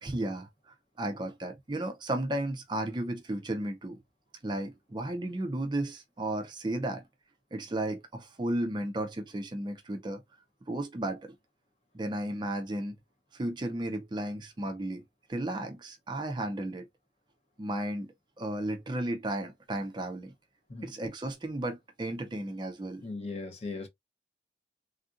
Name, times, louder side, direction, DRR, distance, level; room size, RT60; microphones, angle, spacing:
voice 1, 0.0-4.0 4.4-7.0 7.5-10.2 10.7-11.3 11.9-12.9 13.3-15.0 15.3-16.9 17.6-20.3 20.8-23.0, right 1 dB, 25° right, 0.4 m, -34 dB
voice 2, 23.0-23.9, left 3 dB, 35° left, 0.7 m, -38 dB
3.4 x 2.5 x 2.4 m
head